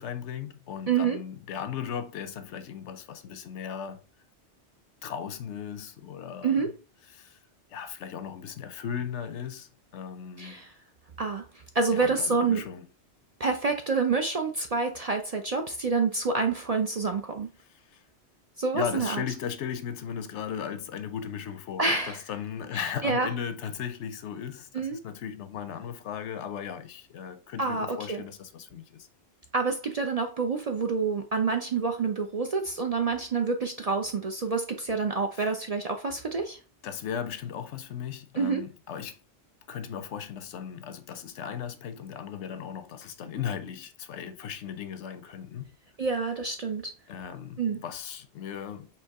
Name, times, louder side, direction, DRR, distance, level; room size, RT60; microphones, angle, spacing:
voice 1, 0.0-4.0 5.0-6.7 7.1-7.4 7.7-10.6 11.9-12.9 18.7-29.1 36.8-39.2 39.7-45.7 47.1-48.9, left 8 dB, 85° left, 1.0 m, -37 dB
voice 2, 0.9-1.2 6.4-6.7 10.4-10.7 11.2-11.4 11.7-12.6 13.4-17.5 18.6-19.2 21.8-22.2 22.7-23.3 24.7-25.0 27.6-28.2 29.5-36.6 38.4-38.6 46.0-46.9 47.6-47.8, right 4 dB, 50° right, 0.4 m, -27 dB
4.6 x 2.9 x 3.5 m
omnidirectional pair, 1.2 m